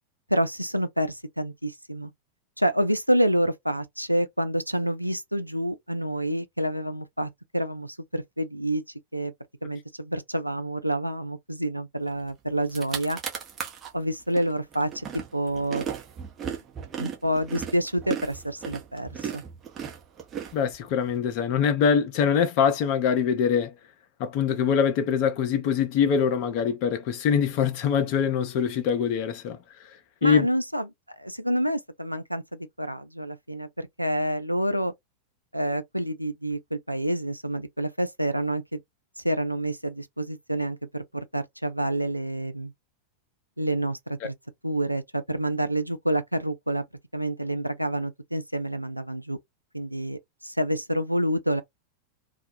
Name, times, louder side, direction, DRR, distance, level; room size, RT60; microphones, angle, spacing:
voice 1, 0.3-2.1 2.6-8.8 9.1-9.3 9.6-13.2 13.9-15.1 15.3-15.8 17.0-19.4 30.2-30.9 31.2-34.9 35.5-38.8 39.2-42.7 43.6-44.3 44.6-46.8 47.1-49.4 49.7-51.6, right 1 dB, 90° right, 0.3 m, -28 dB
sound 1, 12.3-12.4 12.6-13.9 14.4-21.1, right 7 dB, 25° right, 0.8 m, -36 dB
voice 2, 20.5-23.7 24.2-29.6 30.2-30.5, left 7 dB, 45° left, 0.6 m, -23 dB
2.3 x 2.1 x 2.5 m
figure-of-eight pair, 90°, 0 cm